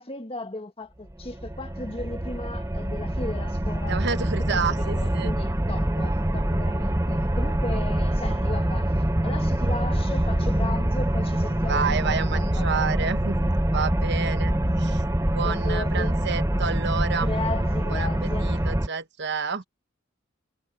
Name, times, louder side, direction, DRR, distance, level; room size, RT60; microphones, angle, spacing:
voice 1, 0.0-8.9 9.2-12.8 15.4-16.1 17.2-18.5, left 2 dB, 30° left, 1.8 m, -36 dB
sound 1, 1.1-18.9, right 1 dB, 15° right, 0.9 m, -25 dB
voice 2, 3.9-5.3 11.7-14.5 14.8-17.3 17.9-19.6, right 5 dB, 60° right, 0.9 m, -30 dB
head